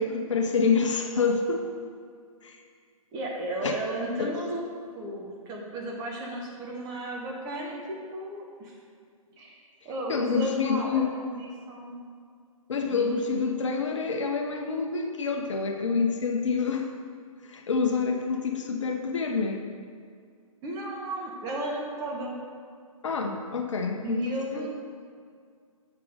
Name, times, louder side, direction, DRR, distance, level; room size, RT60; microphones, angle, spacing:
voice 1, 0.0-1.7 2.4-2.6 3.6-3.8 4.2-4.3 10.1-11.1 12.7-16.9 17.4-19.6 23.0-24.2 24.6-24.7, left 5 dB, 55° left, 3 dB, 0.8 m, -27 dB
voice 2, 3.1-4.6 4.9-8.7 9.4-9.6 9.8-12.0 12.9-13.2 20.6-22.4 24.0-24.7, right 1 dB, 20° right, -2 dB, 1.1 m, -34 dB
8.1 x 4.5 x 5.2 m, 2.2 s
figure-of-eight pair, 135°, 19 cm